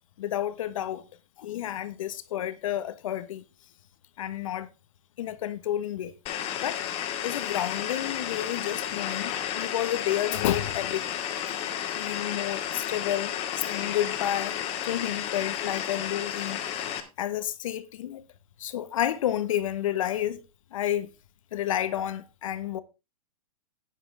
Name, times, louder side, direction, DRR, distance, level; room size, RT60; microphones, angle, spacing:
voice 1, 0.2-1.1 1.4-3.4 4.2-4.7 5.2-6.1 6.6-6.8 7.2-11.2 11.9-13.3 13.6-14.5 14.8-16.6 17.2-18.2 18.6-20.4 20.7-21.1 21.5-22.8, left 11 dB, 65° left, 1.3 m, -30 dB
sound 1, 6.3-17.0, left 10 dB, 35° left, 2.1 m, -32 dB
11.5 x 9.9 x 3.5 m
hypercardioid pair, 130°, 18 cm